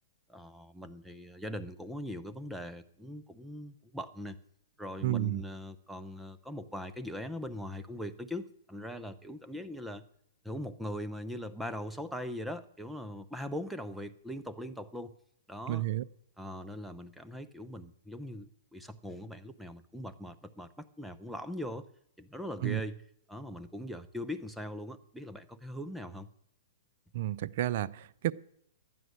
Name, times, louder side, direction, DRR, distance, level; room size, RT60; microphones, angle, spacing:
voice 1, 0.3-4.4 4.8-10.0 10.4-15.1 15.5-15.8 16.4-21.9 22.2-23.0 23.3-26.3, equal, ahead, 9 dB, 0.7 m, -41 dB
voice 2, 5.0-5.4 15.7-16.0 22.6-22.8 27.1-28.3, right 14 dB, 55° right, 16 dB, 0.5 m, -31 dB
12.0 x 9.3 x 6.5 m, 0.71 s
hypercardioid pair, 135°, 0 cm